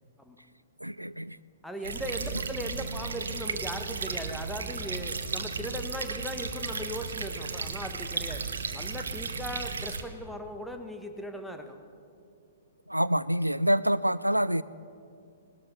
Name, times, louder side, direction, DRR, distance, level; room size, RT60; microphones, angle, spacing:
voice 1, 0.8-1.4 12.9-14.6, right 1 dB, 90° right, 18 dB, 0.3 m, -26 dB
voice 2, 1.6-11.8, equal, ahead, 5 dB, 1.2 m, -38 dB
sound 1, 1.8-10.0, right 4 dB, 65° right, 1.1 m, -34 dB
18.5 x 12.5 x 6.1 m, 2.5 s
figure-of-eight pair, 115°, 0 cm